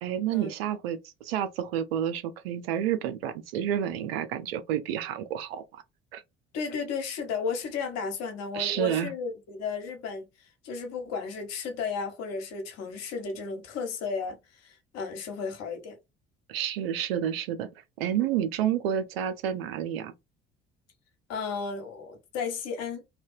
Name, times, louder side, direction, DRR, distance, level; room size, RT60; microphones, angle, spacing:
voice 1, 0.0-5.8 6.1-6.2 8.5-9.1 16.5-17.7 18.0-20.1, right 10 dB, 80° right, 0.5 m, -29 dB
voice 2, 6.5-16.0 18.3-18.4 21.3-23.0, left 5 dB, 60° left, 1.0 m, -34 dB
2.7 x 2.2 x 2.6 m
hypercardioid pair, 55°, 30 cm